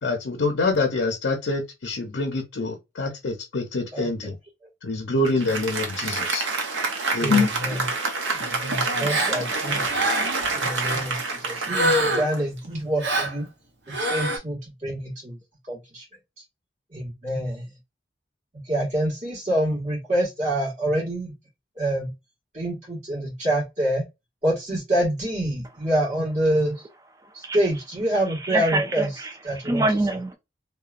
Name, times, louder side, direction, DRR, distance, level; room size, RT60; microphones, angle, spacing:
voice 1, 0.0-4.3 4.8-6.5 7.1-7.5, left 3 dB, 75° left, 0.6 m, -25 dB
Applause, 5.2-12.9, right 3 dB, 80° right, 0.7 m, -27 dB
voice 2, 8.3-10.1 10.5-11.2 11.4-13.5 14.0-15.4 15.7-16.0 16.9-17.6 18.7-21.3 21.8-22.1 22.5-24.0 24.4-26.8 27.5-29.1 29.4-29.8, right 1 dB, 40° right, 1.6 m, -26 dB
Gasp, 9.1-9.4 9.9-10.4 11.7-12.4 13.0-13.4 13.9-14.4, right 1 dB, 60° right, 1.0 m, -24 dB
voice 3, 28.4-30.3, right 2 dB, 20° right, 0.4 m, -25 dB
2.9 x 2.2 x 2.4 m
head